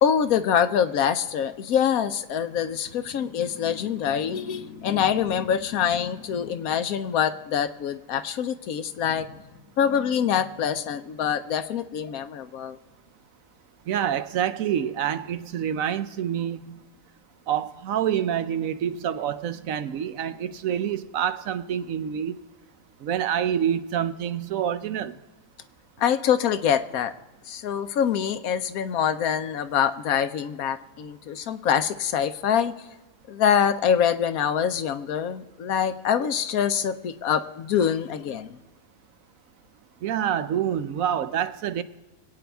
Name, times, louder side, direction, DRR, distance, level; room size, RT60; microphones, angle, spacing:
voice 1, 0.0-9.3 9.8-12.8 26.0-27.1 27.5-32.7 33.3-38.6, left 8 dB, 75° left, 1.1 m, -25 dB
voice 2, 13.9-16.8 17.5-22.4 23.0-25.1 40.0-41.8, right 9 dB, 70° right, 1.0 m, -27 dB
25.5 x 8.9 x 3.5 m
omnidirectional pair, 1.6 m